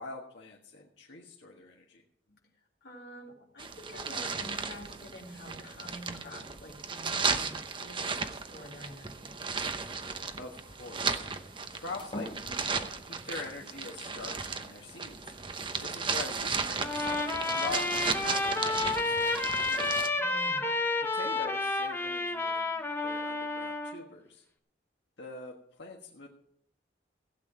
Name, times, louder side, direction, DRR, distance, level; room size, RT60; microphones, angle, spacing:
voice 1, 0.0-2.0 10.4-11.3 11.8-12.7 13.0-15.3 15.8-17.8 18.2-19.9 21.0-24.4 25.2-26.3, left 3 dB, 85° left, -2 dB, 1.5 m, -44 dB
voice 2, 2.8-9.4 20.1-20.7, equal, 65° left, -1 dB, 3.1 m, -48 dB
sound 1, 3.6-20.1, right 5 dB, 30° right, 0.8 m, -35 dB
sound 2, 8.4-20.0, left 1 dB, 30° left, 2.9 m, -52 dB
Trumpet, 16.8-24.0, left 3 dB, 15° left, 1.2 m, -30 dB
16.0 x 8.6 x 4.9 m, 0.68 s
head